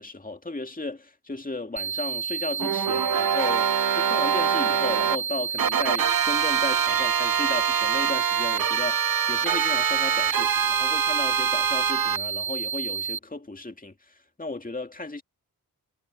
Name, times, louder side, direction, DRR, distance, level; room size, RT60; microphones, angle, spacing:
voice 1, 0.0-15.2, left 2 dB, 25° left, 2.2 m, -35 dB
sound 1, 1.8-13.2, right 7 dB, 30° right, 1.6 m, -30 dB
sound 2, 2.6-5.2 5.6-12.2, right 7 dB, 65° right, 1.0 m, -24 dB
cardioid pair, 55°, 37 cm